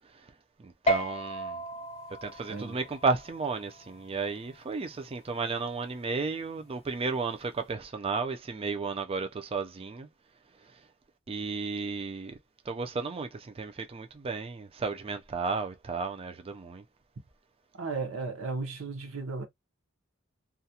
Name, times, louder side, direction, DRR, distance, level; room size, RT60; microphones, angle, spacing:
voice 1, 0.6-1.6 2.2-10.1 11.3-12.4 12.7-16.8, right 4 dB, 30° right, 0.4 m, -33 dB
sound 1, 0.9-7.7, right 1 dB, 30° left, 0.5 m, -37 dB
voice 2, 2.5-2.8 17.8-19.4, right 4 dB, 70° right, 0.7 m, -35 dB
2.4 x 2.1 x 2.7 m
head